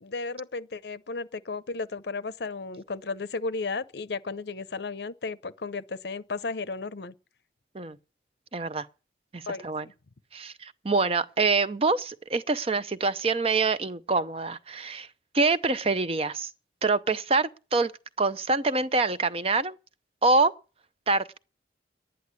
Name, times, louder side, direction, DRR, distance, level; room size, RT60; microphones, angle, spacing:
voice 1, 0.0-7.1 9.5-9.9, left 4 dB, 65° left, 0.7 m, -34 dB
voice 2, 8.5-8.9 9.3-9.9 10.3-15.1 15.3-16.5 16.8-17.9 18.2-19.8 20.2-20.5 21.1-21.4, right 3 dB, 30° right, 0.6 m, -25 dB
11.5 x 10.0 x 8.2 m
head